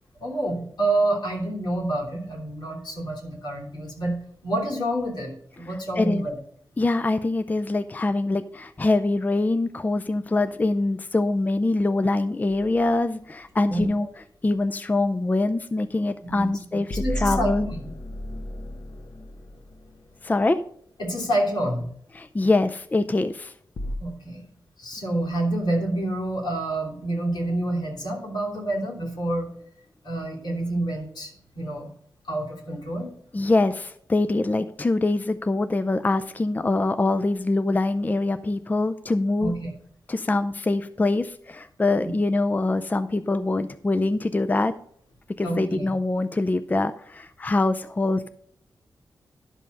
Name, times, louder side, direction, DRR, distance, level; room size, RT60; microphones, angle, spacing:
voice 1, 0.2-6.3 13.7-13.9 16.2-16.5 16.9-17.8 21.0-21.9 24.0-24.4 24.8-29.5 30.0-31.9 32.3-33.1 39.4-39.7 42.0-42.1 45.4-45.9, right 1 dB, 80° left, -2 dB, 3.1 m, -28 dB
voice 2, 6.0-6.3 6.8-14.1 14.4-17.7 20.2-20.6 22.1-23.5 33.3-39.5 40.1-44.7 45.4-48.3, left 2 dB, 25° left, 10 dB, 0.4 m, -24 dB
sound 1, 12.5-13.0 16.9-20.3 23.8-24.0, equal, 55° left, 1.0 m, -33 dB
11.0 x 5.4 x 5.3 m, 0.65 s
wide cardioid pair, 85°, 7 cm